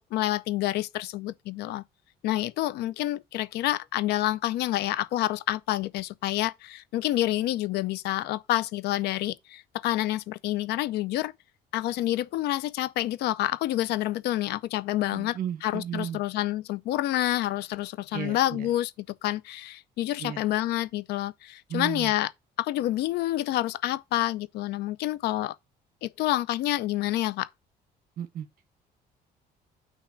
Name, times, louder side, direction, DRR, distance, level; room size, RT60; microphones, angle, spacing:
voice 1, 0.1-1.8 2.2-11.3 11.7-22.3 22.6-25.5 26.0-27.5, left 15 dB, 75° left, 0.5 m, -28 dB
voice 2, 15.1-16.2 18.1-18.7 20.2-20.4 21.7-22.1 28.2-28.5, right 9 dB, 60° right, 1.3 m, -34 dB
9.0 x 3.0 x 4.5 m
cardioid pair, 110°, 17 cm